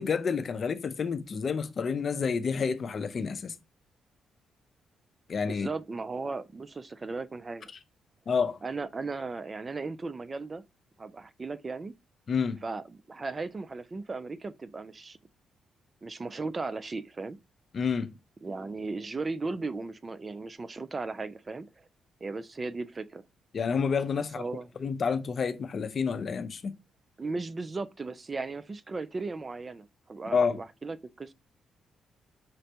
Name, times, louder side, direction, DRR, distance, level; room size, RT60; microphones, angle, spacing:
voice 1, 0.0-3.6 5.3-5.7 8.3-8.6 12.3-12.6 17.7-18.1 23.5-24.4 24.8-26.7 30.3-30.6, left 5 dB, 50° left, 0.5 m, -29 dB
voice 2, 5.5-7.7 8.6-10.6 11.0-11.9 12.6-15.2 16.0-17.4 18.4-21.9 22.2-23.2 24.2-24.7 27.2-31.3, right 3 dB, 30° right, 0.3 m, -36 dB
5.1 x 2.1 x 2.8 m
cardioid pair, 80°, 0 cm